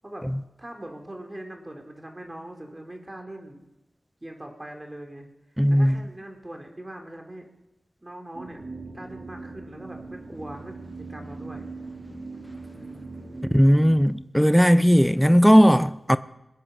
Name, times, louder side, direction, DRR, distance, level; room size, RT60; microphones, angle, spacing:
voice 1, 0.6-3.6 4.2-5.3 5.7-7.5 8.0-8.6 8.9-11.7 12.7-13.2, right 1 dB, 25° right, 3.7 m, -41 dB
voice 2, 5.6-5.9 13.5-16.2, equal, ahead, 0.6 m, -17 dB
sound 1, 8.3-14.1, right 3 dB, 60° right, 3.0 m, -40 dB
21.0 x 8.4 x 7.4 m
cardioid pair, 40°, 0 cm